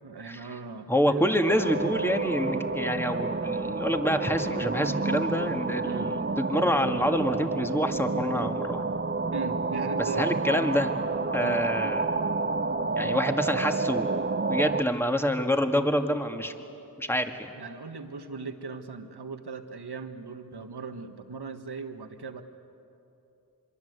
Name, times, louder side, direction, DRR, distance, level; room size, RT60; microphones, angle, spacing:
voice 1, 0.0-1.2 5.9-6.1 9.3-10.4 11.4-11.6 13.0-13.2 17.6-22.4, right 4 dB, 70° right, 7 dB, 1.6 m, -38 dB
voice 2, 0.9-8.8 10.0-10.9 11.3-12.2 13.0-14.2 14.5-16.5 17.0-17.5, equal, 5° left, 5 dB, 1.9 m, -27 dB
sound 1, 1.5-14.8, right 3 dB, 30° right, 0.8 m, -29 dB
25.0 x 23.0 x 8.1 m, 2.9 s
cardioid pair, 45°, 40 cm